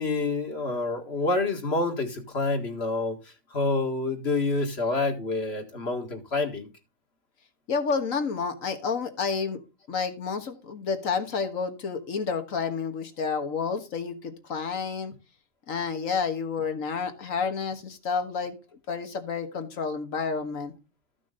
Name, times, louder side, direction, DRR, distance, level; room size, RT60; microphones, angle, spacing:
voice 1, 0.0-3.2 3.5-6.7, left 3 dB, 50° left, 2.0 m, -27 dB
voice 2, 7.7-9.6 9.9-15.1 15.7-18.6 18.9-20.7, left 5 dB, 80° left, 1.9 m, -30 dB
13.5 x 6.2 x 3.8 m
omnidirectional pair, 1.4 m